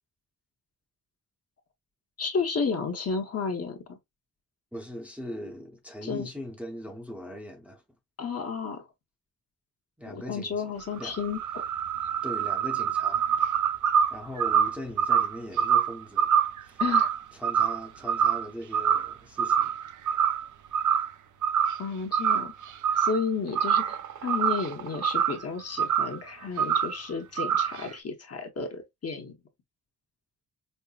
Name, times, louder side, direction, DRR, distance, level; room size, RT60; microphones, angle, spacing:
voice 1, 2.2-4.0 6.0-6.3 8.2-8.9 10.0-11.6 12.0-12.1 16.8-17.1 21.8-22.5 23.0-29.4, left 5 dB, 45° left, 0.9 m, -32 dB
voice 2, 4.7-7.8 10.0-10.7 11.0-11.2 12.2-13.3 14.1-16.3 16.6-16.8 17.3-19.7, equal, 5° right, 0.7 m, -40 dB
sound 1, 10.8-18.5 18.7-19.1 19.4-20.5 20.7-21.1 21.4-21.9 22.1-23.2 23.5-25.4 25.8-26.2 26.6-27.0 27.4-27.9, right 8 dB, 55° right, 0.5 m, -25 dB
5.4 x 2.1 x 2.3 m
wide cardioid pair, 140°, 36 cm